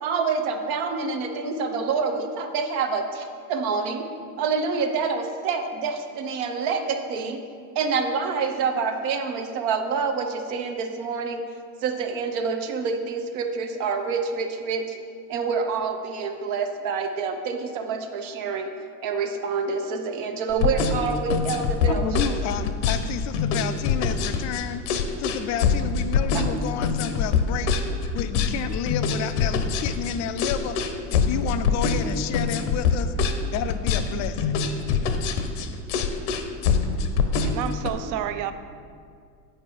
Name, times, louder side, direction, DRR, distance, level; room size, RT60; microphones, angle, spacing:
voice 1, 0.0-4.0 4.4-7.4 7.7-11.5 11.8-15.0 15.3-18.7 19.0-22.3 26.3-26.5, right 5 dB, 65° right, 5 dB, 0.9 m, -27 dB
sound 1, 20.5-37.9, left 6 dB, 70° left, 0.8 m, -24 dB
voice 2, 21.9-24.9 25.2-27.7 28.1-30.8 31.1-33.1 33.5-34.6, left 9 dB, 40° left, 11 dB, 0.4 m, -31 dB
voice 3, 37.4-38.5, right 10 dB, 45° right, 11 dB, 0.5 m, -30 dB
7.9 x 4.5 x 4.5 m, 2.2 s
hypercardioid pair, 95°, 47 cm